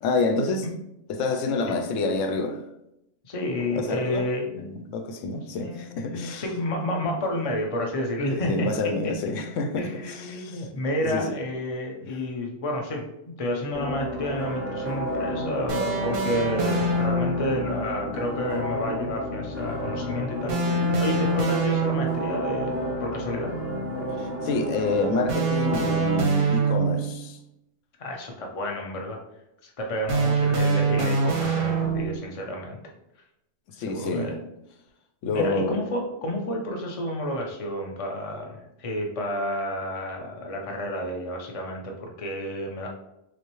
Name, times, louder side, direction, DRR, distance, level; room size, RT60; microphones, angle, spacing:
voice 1, 0.0-0.7 1.1-2.6 3.7-4.3 4.5-6.4 8.3-10.7 11.0-11.4 12.0-12.1 24.2-27.4 33.8-34.4 35.2-35.8, left 3 dB, 90° left, 0.9 m, -28 dB
voice 2, 3.2-4.7 5.6-8.7 9.8-13.1 13.4-23.5 28.0-29.2 29.6-32.8 33.9-34.3 35.2-42.9, left 1 dB, 35° left, 0.6 m, -30 dB
sound 1, 13.7-26.2, equal, 15° right, 0.7 m, -31 dB
sound 2, 15.7-17.5 20.5-22.4 25.3-27.2 30.1-32.3, right 3 dB, 50° right, 0.7 m, -24 dB
6.0 x 2.0 x 3.0 m
omnidirectional pair, 1.3 m